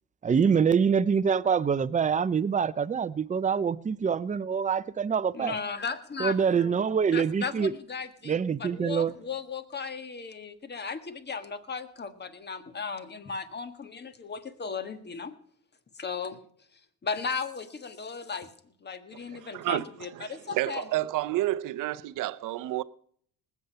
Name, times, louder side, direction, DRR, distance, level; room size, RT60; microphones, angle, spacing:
voice 1, 0.2-5.5 6.2-7.7 8.2-9.1, right 6 dB, 25° right, 0.6 m, -25 dB
voice 2, 5.3-6.8 7.1-15.3 15.9-16.4 17.0-18.5 18.8-20.9, left 5 dB, 30° left, 1.6 m, -36 dB
voice 3, 19.2-19.9 20.1-22.8, right 16 dB, 75° right, 0.7 m, -30 dB
19.5 x 8.4 x 5.6 m
cardioid pair, 85°, 32 cm